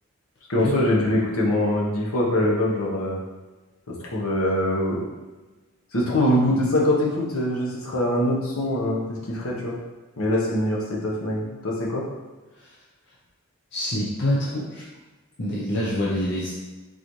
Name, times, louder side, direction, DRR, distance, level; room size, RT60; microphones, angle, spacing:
voice 1, 0.5-3.2 3.9-5.0 5.9-9.8 10.2-12.0, left 1 dB, 85° left, -3 dB, 1.1 m, -23 dB
voice 2, 13.7-14.8 15.4-16.6, left 1 dB, 55° left, -6 dB, 0.7 m, -26 dB
4.0 x 3.9 x 3.1 m, 1.2 s
head